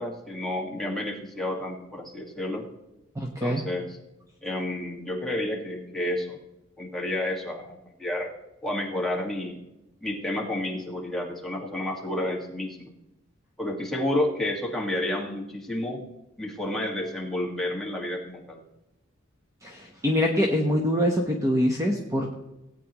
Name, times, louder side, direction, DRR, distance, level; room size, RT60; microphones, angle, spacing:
voice 1, 0.0-2.6 3.4-4.0 4.4-6.4 6.8-8.3 8.6-9.5 10.0-12.9 13.6-16.0 16.4-18.6, left 1 dB, ahead, -2 dB, 1.9 m, -30 dB
voice 2, 3.2-3.6 19.6-22.3, equal, 15° right, 1 dB, 1.0 m, -24 dB
17.5 x 9.2 x 3.1 m, 0.93 s
head